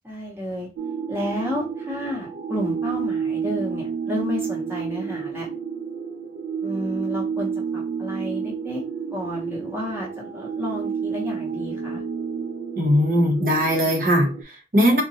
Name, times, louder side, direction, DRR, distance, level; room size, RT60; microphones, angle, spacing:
voice 1, 0.0-0.7 1.1-5.5 6.6-8.8 9.1-12.0, left 1 dB, 15° right, 0.6 m, -31 dB
sound 1, 0.8-14.4, right 6 dB, 65° right, 0.3 m, -30 dB
voice 2, 12.8-15.0, equal, 50° right, 0.9 m, -20 dB
3.8 x 2.1 x 2.7 m
head